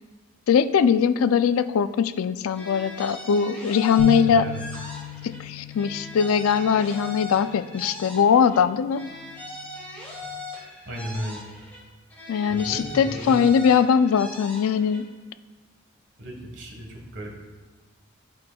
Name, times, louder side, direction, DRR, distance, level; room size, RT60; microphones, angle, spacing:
voice 1, 0.5-4.5 5.2-9.0 12.3-15.1, left 7 dB, 80° left, 12 dB, 0.3 m, -21 dB
sound 1, 2.5-5.4 5.7-8.6 8.9-11.8 12.1-15.0, left 2 dB, 10° left, 2.1 m, -40 dB
sound 2, 4.0-10.2, right 1 dB, 85° right, 2.2 m, -37 dB
voice 2, 4.2-4.6 10.8-11.5 12.5-13.5 16.2-17.4, equal, 60° right, 0 dB, 1.5 m, -35 dB
11.5 x 6.0 x 2.3 m, 1.3 s
head